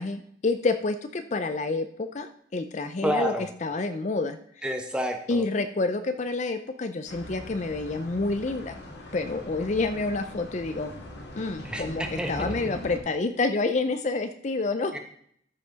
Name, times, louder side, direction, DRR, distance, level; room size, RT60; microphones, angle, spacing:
voice 1, 0.0-4.7 5.3-8.7 9.1-10.9 11.4-14.9, left 3 dB, 40° left, 8 dB, 0.5 m, -28 dB
voice 2, 3.0-3.4 4.6-5.4 11.6-12.5 14.9-15.0, equal, 5° right, 4 dB, 1.1 m, -29 dB
sound 1, 7.1-13.0, left 1 dB, 65° left, 1.9 m, -41 dB
13.5 x 5.8 x 4.0 m, 0.65 s
head